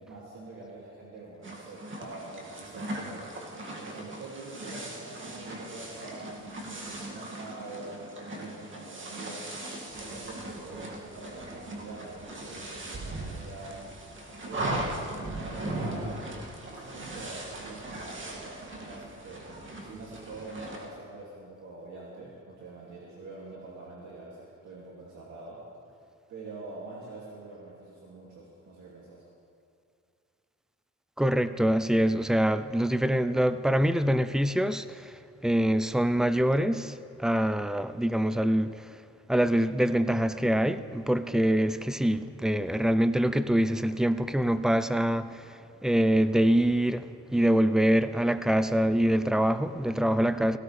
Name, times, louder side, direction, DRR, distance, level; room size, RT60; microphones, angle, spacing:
voice 1, 0.0-3.3 3.7-9.5 9.9-13.8 14.5-16.3 16.6-19.5 19.8-25.6 26.3-29.2, right 3 dB, 75° right, -5 dB, 2.5 m, -45 dB
sound 1, 1.4-20.9, right 1 dB, 40° right, 2.3 m, -39 dB
voice 2, 31.2-38.7 39.3-45.5 45.8-50.6, right 1 dB, ahead, 13 dB, 0.5 m, -25 dB
17.5 x 16.5 x 3.4 m, 2.4 s
cardioid pair, 90°, 30 cm